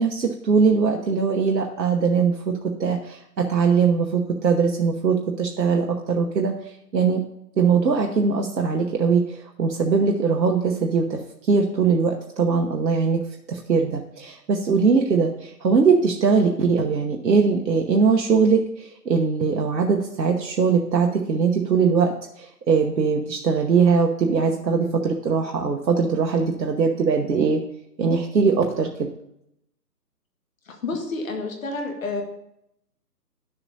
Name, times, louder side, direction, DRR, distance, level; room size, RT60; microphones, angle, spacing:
voice 1, 0.0-2.5 2.8-6.5 6.9-7.2 7.6-13.2 13.5-27.6 28.0-29.1, right 5 dB, 80° right, 2 dB, 1.0 m, -21 dB
voice 2, 30.7-32.2, left 3 dB, 50° left, 2 dB, 1.9 m, -29 dB
11.5 x 6.9 x 2.7 m, 0.79 s
hypercardioid pair, 155°, 50 cm